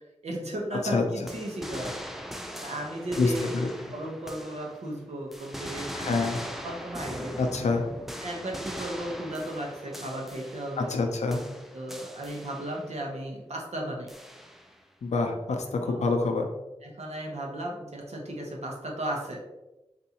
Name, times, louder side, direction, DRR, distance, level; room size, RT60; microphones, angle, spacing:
voice 1, 0.2-2.0 2.6-3.4 3.9-6.2 6.6-7.5 8.2-10.9 11.7-14.1 15.8-16.0 16.8-19.4, right 1 dB, 75° right, -1 dB, 0.9 m, -35 dB
sound 1, 1.3-5.0 5.3-11.0 11.3-13.0 14.1-14.8, equal, ahead, 0.4 m, -40 dB
voice 2, 3.2-3.7 5.9-6.4 7.4-7.9 10.8-11.4 15.0-16.5, left 3 dB, 90° left, 4 dB, 0.5 m, -26 dB
3.9 x 2.6 x 2.8 m, 1.0 s
cardioid pair, 50°, 11 cm